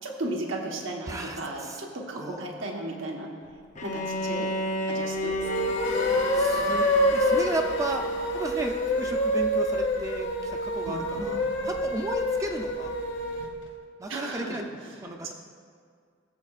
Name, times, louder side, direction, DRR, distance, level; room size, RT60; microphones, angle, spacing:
voice 1, 0.0-3.3 3.8-4.5 4.9-5.8 10.8-11.4 14.1-15.3, right 1 dB, 85° right, 0 dB, 1.1 m, -35 dB
voice 2, 1.1-1.8 2.1-2.4 6.3-8.1 8.3-12.9 14.0-15.3, right 1 dB, 15° right, 3 dB, 0.4 m, -34 dB
Bowed string instrument, 3.7-8.7, left 1 dB, 35° left, 0.6 m, -33 dB
sound 1, 5.3-13.5, equal, 65° left, 1.1 m, -27 dB
sound 2, 5.8-10.4, left 3 dB, 85° left, 1.4 m, -43 dB
16.5 x 7.4 x 2.4 m, 2.1 s
head